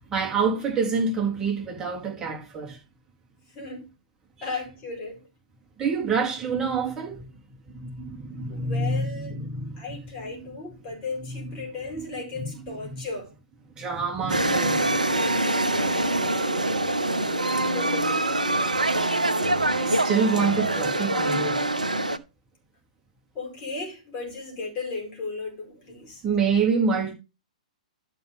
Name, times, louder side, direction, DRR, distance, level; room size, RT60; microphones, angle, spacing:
voice 1, 0.1-2.8 4.4-4.5 5.8-7.3 7.7-10.0 12.3-12.5 12.8-13.0 13.8-14.9 19.7-21.6 26.2-27.1, right 5 dB, 15° right, 3.8 m, -27 dB
voice 2, 3.5-3.9 4.4-5.3 8.5-9.4 9.8-13.3 15.6-19.2 23.3-26.2, left 3 dB, 30° left, 4.7 m, -36 dB
sound 1, 14.3-22.2, right 1 dB, 90° right, 1.1 m, -24 dB
12.5 x 5.5 x 3.8 m
figure-of-eight pair, 115°, 4 cm